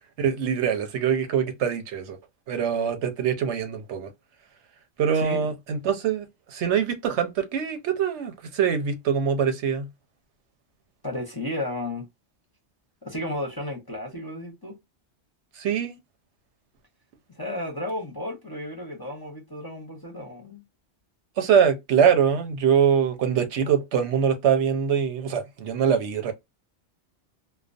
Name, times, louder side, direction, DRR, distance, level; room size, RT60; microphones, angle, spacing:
voice 1, 0.2-2.2 2.5-4.1 5.0-9.9 15.6-16.0 21.4-26.3, right 7 dB, 85° right, 0.9 m, -23 dB
voice 2, 5.1-5.5 11.0-12.1 13.0-14.8 17.3-20.6, left 1 dB, 25° left, 0.5 m, -33 dB
2.3 x 2.1 x 2.4 m
omnidirectional pair, 1.2 m